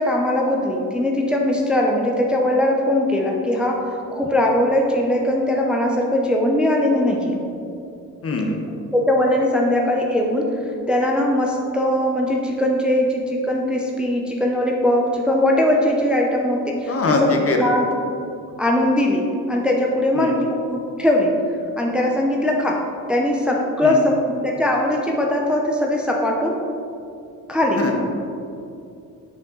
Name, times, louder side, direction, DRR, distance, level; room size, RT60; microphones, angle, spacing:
voice 1, 0.0-7.4 8.9-10.6 10.9-17.1 17.5-17.9 18.6-21.4 21.8-26.6 27.5-27.9, left 1 dB, 5° right, -1 dB, 0.6 m, -20 dB
voice 2, 8.2-8.6 16.9-17.7 20.2-20.4 23.8-24.0 27.8-27.9, left 3 dB, 40° left, 2 dB, 0.8 m, -22 dB
6.0 x 5.0 x 3.8 m, 2.6 s
cardioid pair, 90°, 37 cm